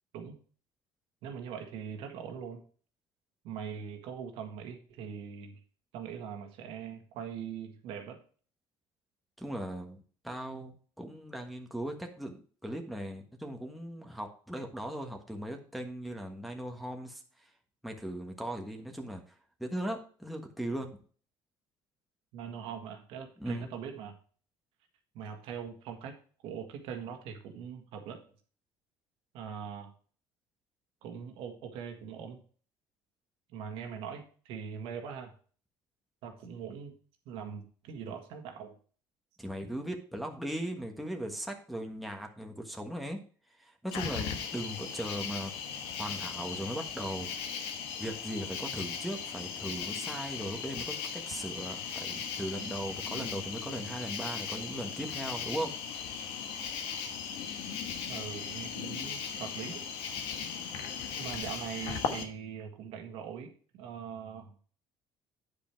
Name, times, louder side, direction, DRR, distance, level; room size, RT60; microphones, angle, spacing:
voice 1, 1.2-2.6 3.4-5.6 5.9-8.2 22.3-24.1 25.1-26.1 26.4-28.2 29.3-29.9 31.0-32.4 33.5-35.3 36.2-36.9 37.2-38.7 58.1-59.8 61.2-64.6, right 7 dB, 80° right, 4 dB, 1.7 m, -42 dB
voice 2, 9.4-17.5 17.8-19.2 19.6-21.0 23.4-23.7 39.4-43.2 43.5-45.5 46.0-47.3 48.0-55.7, right 1 dB, ahead, 2 dB, 1.3 m, -38 dB
Cricket, 43.9-62.2, left 7 dB, 85° left, 1.3 m, -38 dB
9.5 x 5.1 x 4.5 m, 0.43 s
cardioid pair, 130°, 9 cm